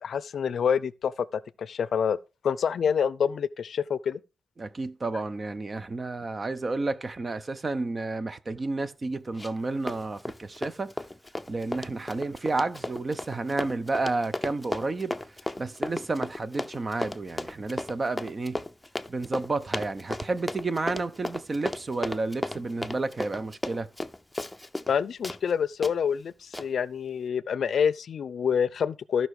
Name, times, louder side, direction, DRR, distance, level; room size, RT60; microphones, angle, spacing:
voice 1, 0.0-2.2 2.4-4.2 24.9-29.3, left 7 dB, 70° left, 0.6 m, -27 dB
voice 2, 4.6-10.9 11.5-15.1 15.6-18.6 19.1-23.9, right 3 dB, 35° right, 0.9 m, -31 dB
Run, 9.4-9.6 9.9-25.0 25.2-25.4 25.8-25.9 26.5-26.7, left 1 dB, 10° left, 0.7 m, -34 dB
14.0 x 5.6 x 4.9 m
cardioid pair, 95°, 0 cm